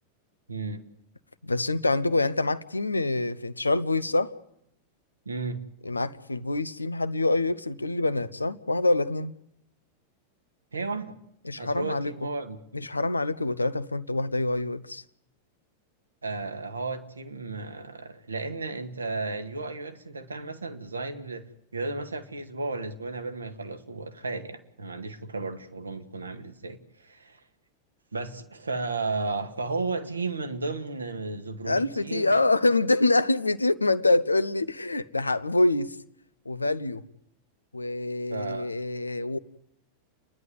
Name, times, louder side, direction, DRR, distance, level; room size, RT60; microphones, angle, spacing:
voice 1, 0.5-0.8 5.3-5.6 10.7-11.2 11.6-12.6 16.2-21.5 21.7-27.4 28.1-32.4 38.3-38.7, right 3 dB, 75° right, 1.9 m, -34 dB
voice 2, 1.4-4.3 5.8-9.3 11.4-12.1 12.7-15.0 31.6-36.0 36.4-37.0 37.7-39.4, left 2 dB, 80° left, 0.9 m, -26 dB
30.0 x 11.0 x 9.7 m
figure-of-eight pair, 90°, 0 cm